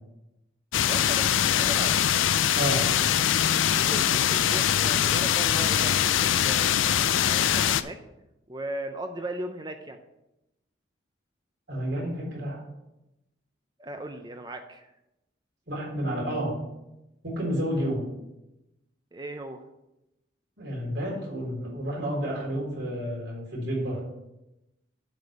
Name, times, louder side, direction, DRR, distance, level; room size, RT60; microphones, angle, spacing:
sound 1, 0.7-7.8, left 10 dB, 90° left, 0.4 m, -23 dB
voice 1, 0.9-2.0 3.7-8.0 8.5-10.0 13.8-14.9 17.7-17.9 19.1-19.6, right 1 dB, 20° right, 6 dB, 0.5 m, -38 dB
voice 2, 2.6-2.9 11.7-12.6 15.7-16.6 17.2-18.0 20.6-24.0, equal, 65° right, -3 dB, 3.6 m, -30 dB
7.8 x 5.2 x 7.1 m, 0.92 s
head